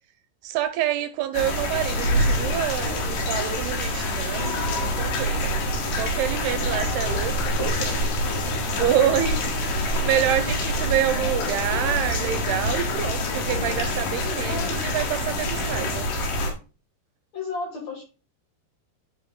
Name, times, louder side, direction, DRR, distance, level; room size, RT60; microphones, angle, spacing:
voice 1, 0.4-5.6 6.0-8.0 8.7-9.4 10.0-16.1, right 11 dB, 85° right, 2.5 m, -27 dB
sound 1, 1.3-16.5, left 1 dB, 80° left, 3.7 m, -26 dB
voice 2, 8.8-9.5 11.1-11.7 14.4-15.0 17.3-18.0, left 3 dB, 55° left, 2.3 m, -35 dB
11.0 x 4.9 x 2.2 m
omnidirectional pair, 4.8 m